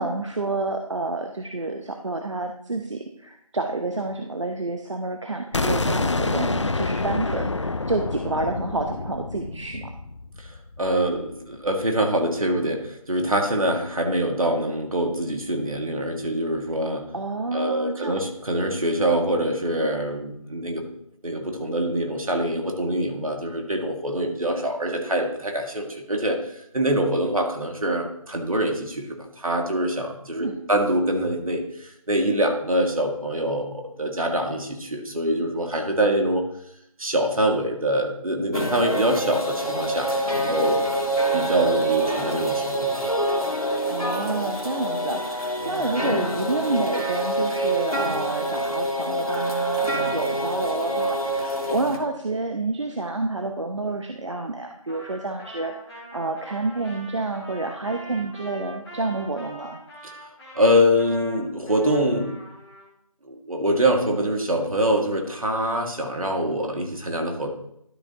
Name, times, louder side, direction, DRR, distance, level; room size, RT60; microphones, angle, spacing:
voice 1, 0.0-9.9 17.1-18.2 30.3-30.6 43.9-59.8, right 2 dB, 55° right, 4 dB, 0.7 m, -29 dB
sound 1, 5.5-11.3, left 3 dB, 55° left, 0.5 m, -27 dB
voice 2, 10.8-17.1 17.5-20.9 21.2-36.4 37.0-40.8 41.3-42.9 45.6-45.8 60.6-62.4 63.2-67.5, right 1 dB, 70° right, 2 dB, 2.0 m, -24 dB
sound 2, 38.5-52.0, right 1 dB, 70° left, 2.1 m, -26 dB
Trumpet, 54.9-62.9, equal, 10° left, 2.2 m, -43 dB
12.0 x 6.8 x 2.9 m, 0.74 s
figure-of-eight pair, 170°, 19 cm